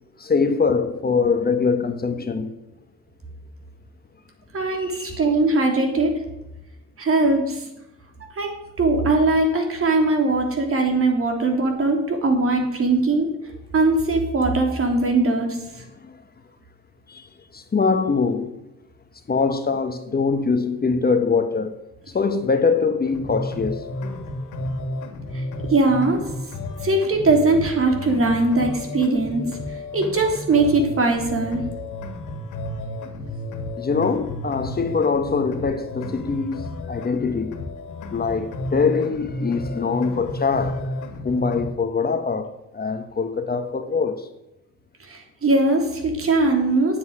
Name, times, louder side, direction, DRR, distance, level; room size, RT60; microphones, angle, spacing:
voice 1, 0.2-2.5 4.7-5.2 16.0-16.2 17.1-18.6 19.3-21.8 22.1-24.3 33.8-37.6 38.1-40.9 41.2-44.3, left 5 dB, 30° left, 1.2 m, -23 dB
voice 2, 4.5-6.1 7.0-7.6 8.4-13.3 13.7-15.8 25.3-25.4 25.7-26.2 26.8-29.4 29.9-31.6 45.1-47.0, right 2 dB, 45° right, 3.5 m, -20 dB
sound 1, 23.1-41.7, left 1 dB, 85° left, 2.3 m, -32 dB
9.5 x 8.1 x 9.6 m
cardioid pair, 90°, 30 cm